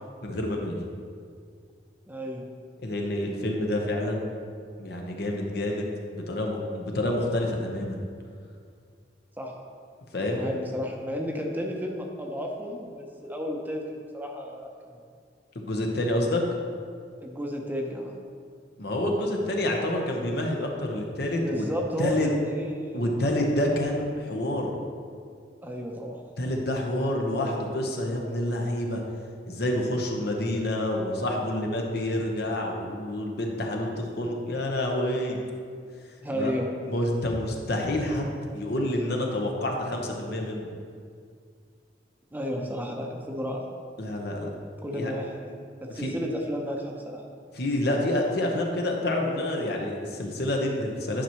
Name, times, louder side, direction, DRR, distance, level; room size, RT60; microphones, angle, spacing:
voice 1, 0.2-0.8 2.8-4.3 4.8-8.0 10.1-10.5 15.5-16.4 18.8-21.6 22.0-22.3 22.9-24.7 26.4-29.0 29.5-35.4 36.3-36.5 36.9-40.7 44.0-44.5 44.9-45.2 46.0-46.1 47.5-51.2, left 1 dB, 65° left, 1 dB, 0.9 m, -28 dB
voice 2, 2.1-2.5 9.4-9.5 10.3-15.0 17.2-18.2 21.4-23.1 25.6-26.2 36.2-36.7 42.3-43.7 44.8-47.2, equal, 10° right, 0 dB, 0.6 m, -33 dB
10.0 x 5.7 x 3.0 m, 2.2 s
head